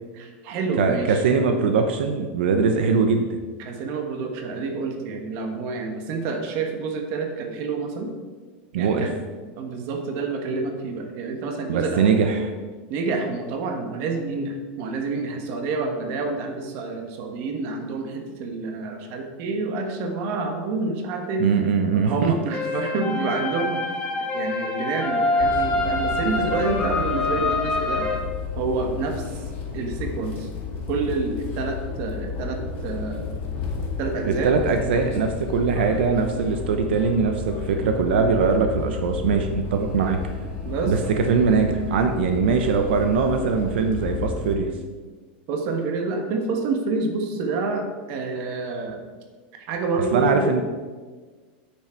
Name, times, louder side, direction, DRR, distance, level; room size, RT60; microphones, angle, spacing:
voice 1, 0.1-1.2 3.6-8.1 8.8-9.2 9.6-12.1 12.9-21.5 21.9-23.8 24.3-28.1 28.5-29.4 29.7-30.5 30.9-33.4 34.0-34.5 40.6-40.9 45.5-49.0 49.5-50.5, right 3 dB, 45° right, 4 dB, 1.3 m, -28 dB
voice 2, 0.8-3.3 8.7-9.1 11.7-12.5 21.4-22.1 34.2-40.2 40.8-44.7 50.1-50.6, right 5 dB, 85° right, 5 dB, 0.8 m, -21 dB
sound 1, 22.5-28.2, left 2 dB, 15° left, 1.7 m, -25 dB
sound 2, 25.4-44.6, left 5 dB, 35° left, 1.9 m, -32 dB
8.4 x 6.2 x 4.5 m, 1.4 s
supercardioid pair, 160°, 6 cm